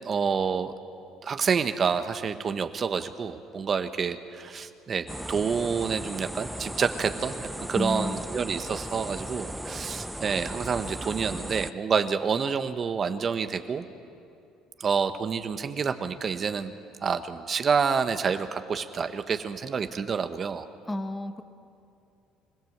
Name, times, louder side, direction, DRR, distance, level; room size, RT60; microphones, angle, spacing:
voice 1, 0.0-0.7 1.2-13.8 14.8-16.7 17.0-20.7, right 6 dB, 40° right, 9 dB, 1.1 m, -28 dB
sound 1, 5.1-11.7, right 1 dB, 5° right, 0.6 m, -37 dB
voice 2, 7.7-8.2 20.9-21.4, left 1 dB, 10° left, 9 dB, 1.2 m, -31 dB
26.0 x 16.0 x 8.0 m, 2.6 s
supercardioid pair, 95°, 0 cm